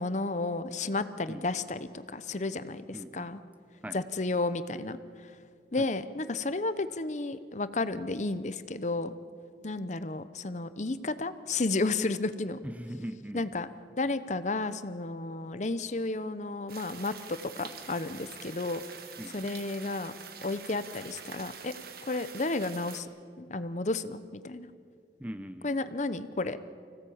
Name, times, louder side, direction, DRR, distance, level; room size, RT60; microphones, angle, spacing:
voice 1, 0.0-3.4 3.9-5.0 5.7-9.1 9.6-12.6 13.3-13.7 14.0-18.8 19.3-20.1 20.4-21.7 22.1-23.1 23.4-24.7 25.6-26.7, left 2 dB, 40° left, 13 dB, 0.8 m, -32 dB
voice 2, 2.9-3.4 3.8-4.0 5.8-5.9 12.6-13.5 19.2-19.5 25.2-25.8, equal, 10° right, 11 dB, 0.6 m, -41 dB
sound 1, 16.7-23.0, right 6 dB, 55° right, 1.7 m, -46 dB
25.0 x 17.0 x 8.7 m, 2.3 s
head